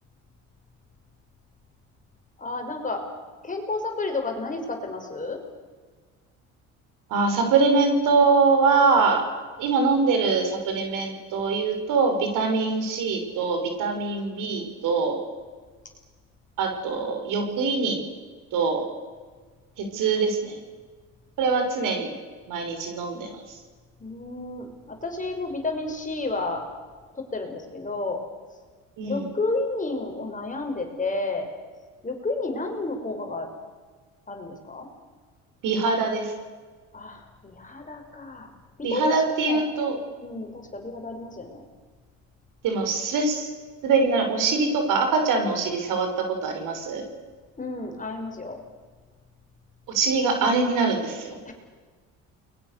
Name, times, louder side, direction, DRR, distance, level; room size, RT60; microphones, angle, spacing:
voice 1, 2.4-3.1 3.4-5.4 24.0-26.7 27.1-28.2 29.0-31.5 32.0-33.5 34.3-34.9 36.9-38.5 38.8-39.6 40.2-41.6 47.6-48.6 51.4-51.5, left 3 dB, 25° left, 3 dB, 5.8 m, -31 dB
voice 2, 7.1-9.2 9.6-15.2 16.6-18.0 18.5-18.8 19.8-20.6 21.4-22.1 22.5-23.6 29.0-29.3 35.6-36.3 38.8-40.0 42.6-43.5 43.8-46.1 46.4-47.0 49.9-51.4, right 4 dB, 70° right, 4 dB, 6.1 m, -23 dB
30.0 x 22.0 x 6.9 m, 1.4 s
supercardioid pair, 80°, 33 cm